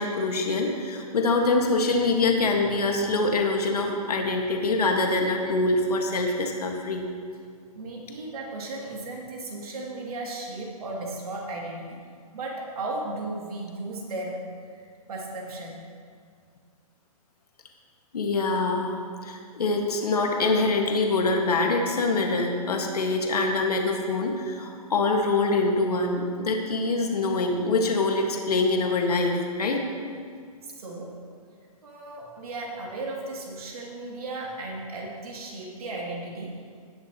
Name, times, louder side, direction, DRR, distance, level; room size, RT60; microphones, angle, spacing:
voice 1, 0.0-7.0 18.1-29.9, left 3 dB, 85° left, 1 dB, 1.8 m, -24 dB
voice 2, 7.7-12.0 12.3-15.9 30.6-31.2 31.8-36.6, right 2 dB, 75° right, -2 dB, 2.8 m, -35 dB
18.0 x 7.2 x 3.1 m, 2.1 s
hypercardioid pair, 140°, 19 cm